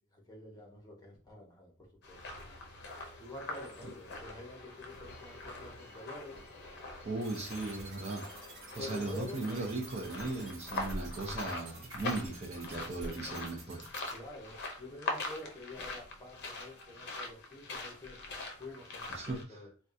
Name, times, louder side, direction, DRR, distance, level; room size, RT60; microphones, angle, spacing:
voice 1, 0.1-2.2 3.2-6.4 8.8-9.5 10.2-10.4 13.0-13.3 14.1-18.2 18.5-19.7, left 2 dB, 20° left, -1 dB, 0.9 m, -48 dB
sound 1, 2.0-19.4, left 2 dB, 55° left, 0.6 m, -43 dB
voice 2, 7.0-8.3 8.7-13.8 19.1-19.6, right 2 dB, 30° right, 0 dB, 0.5 m, -37 dB
sound 2, 7.2-14.1, right 4 dB, 65° right, 0.9 m, -51 dB
3.4 x 2.3 x 2.6 m, 0.39 s
head